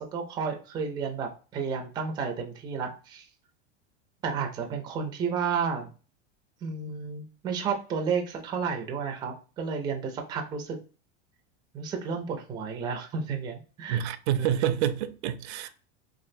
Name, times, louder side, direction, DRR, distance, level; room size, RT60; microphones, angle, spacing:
voice 1, 0.0-3.3 4.2-5.9 6.6-10.8 11.7-14.0 14.4-14.5 15.6-15.7, right 6 dB, 15° right, 0.3 m, -32 dB
voice 2, 13.9-15.7, right 10 dB, 75° right, 0.5 m, -27 dB
3.2 x 2.4 x 2.5 m
supercardioid pair, 140°, 34 cm